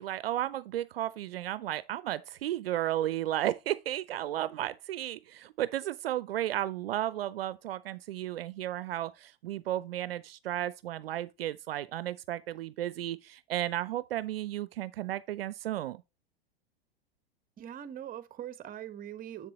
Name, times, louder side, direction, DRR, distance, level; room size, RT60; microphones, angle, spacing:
voice 1, 0.0-16.0, right 13 dB, 75° right, 0.6 m, -34 dB
voice 2, 17.6-19.5, right 10 dB, 30° right, 1.1 m, -42 dB
7.3 x 6.7 x 3.1 m
hypercardioid pair, 100°, 30 cm